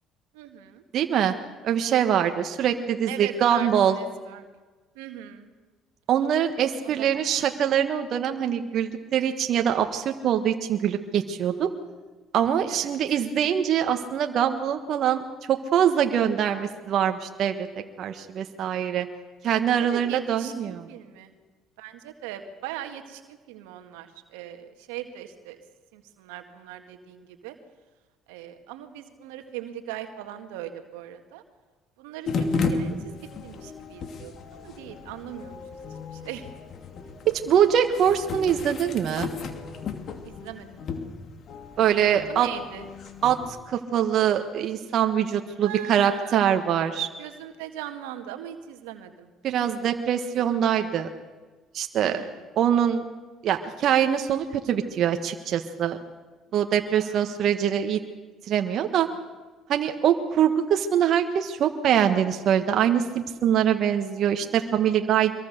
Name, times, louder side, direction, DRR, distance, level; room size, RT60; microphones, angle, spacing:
voice 1, 0.3-0.8 3.1-4.5 5.0-5.5 6.8-7.3 12.7-12.9 19.8-21.3 21.8-25.6 25.9-27.6 28.3-31.4 32.0-35.6 35.9-36.5 40.2-40.9 42.3-42.9 45.6-46.6 47.2-49.3 52.0-52.4 57.0-57.2, right 11 dB, 85° right, 7 dB, 1.8 m, -40 dB
voice 2, 0.9-1.3 1.6-3.9 6.1-11.7 12.3-15.2 15.5-17.7 18.0-19.1 19.4-20.9 37.2-39.3 41.8-42.5 43.2-47.1 49.4-51.1 51.7-52.2 52.5-53.0 53.4-56.0 56.5-58.0 58.5-59.1 59.7-65.3, right 9 dB, 60° right, 6 dB, 1.5 m, -23 dB
sound 1, 32.3-43.6, left 4 dB, 55° left, 2.6 m, -34 dB
24.0 x 22.5 x 6.7 m, 1.3 s
hypercardioid pair, 65°, 0 cm